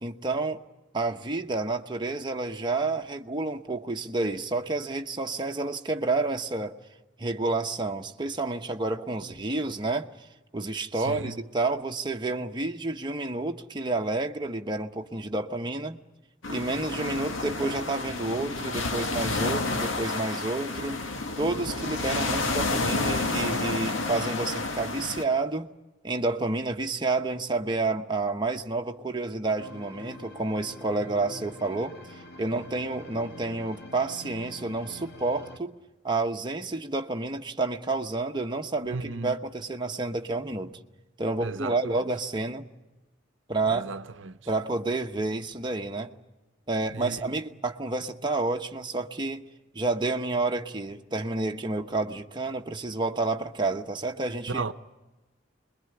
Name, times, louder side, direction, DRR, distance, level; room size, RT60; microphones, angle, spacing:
voice 1, 0.0-0.6 0.9-6.8 7.2-10.1 10.5-16.0 16.5-21.0 21.4-25.7 26.0-35.8 36.0-40.8 41.2-42.7 43.5-43.9 44.5-46.1 46.7-49.4 49.7-54.6, right 3 dB, 25° right, 1.1 m, -30 dB
voice 2, 10.9-11.4 38.8-39.4 41.4-42.0 43.7-44.4 46.9-47.4 54.5-54.7, right 3 dB, 70° right, 0.8 m, -35 dB
sound 1, 16.4-25.2, left 3 dB, 90° left, 1.9 m, -30 dB
sound 2, 29.6-35.6, equal, 55° left, 2.3 m, -45 dB
27.0 x 21.5 x 9.8 m
head